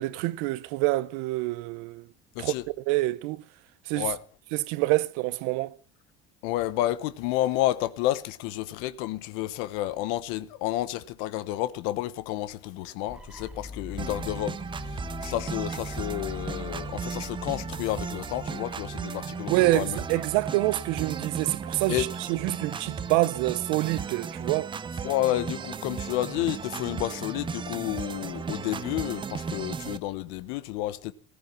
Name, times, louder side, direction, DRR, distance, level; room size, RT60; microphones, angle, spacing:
voice 1, 0.0-2.1 2.4-3.4 3.9-4.1 4.5-5.8 19.5-24.7, right 20 dB, 85° right, 0.9 m, -27 dB
voice 2, 6.4-14.6 14.9-20.0 21.9-22.1 25.0-31.1, left 15 dB, 85° left, 1.1 m, -30 dB
sound 1, 13.1-19.0, left 4 dB, 5° right, 1.4 m, -42 dB
sound 2, 14.0-30.0, right 6 dB, 25° right, 0.9 m, -35 dB
15.5 x 14.5 x 5.9 m
cardioid pair, 125°, 21 cm